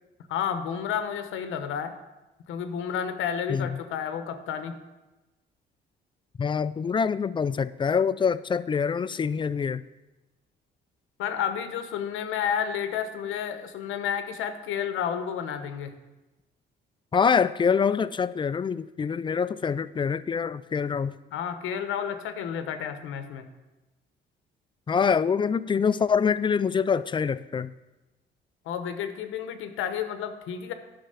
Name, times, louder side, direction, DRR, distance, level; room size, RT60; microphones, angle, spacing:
voice 1, 0.3-1.9 2.5-4.8 11.2-15.9 21.3-23.5 28.6-30.7, left 8 dB, 85° left, 0.9 m, -31 dB
voice 2, 6.4-9.8 17.1-21.2 24.9-27.7, left 6 dB, 25° left, 0.3 m, -25 dB
10.0 x 5.9 x 5.6 m
cardioid pair, 90°, 20 cm